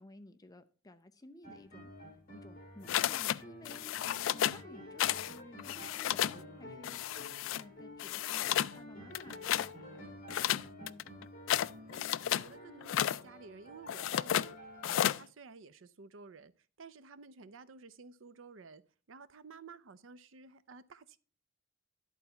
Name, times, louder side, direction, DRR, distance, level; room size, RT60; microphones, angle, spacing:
voice 1, 0.0-7.0 7.5-11.0, left 1 dB, 20° left, 0.6 m, -55 dB
sound 1, 1.4-15.1, left 1 dB, 45° left, 2.5 m, -51 dB
sound 2, 2.9-3.4 3.6-4.6 5.0-5.3 5.6-6.4 6.8-7.6 8.0-8.7 9.1-9.7 10.3-12.5 12.8-13.2 13.9-14.5 14.8-15.2, left 11 dB, 75° left, 0.3 m, -32 dB
voice 2, 11.7-14.6 14.8-16.5 16.8-18.8 19.1-21.2, right 4 dB, 80° right, 0.6 m, -53 dB
11.0 x 4.1 x 5.6 m
head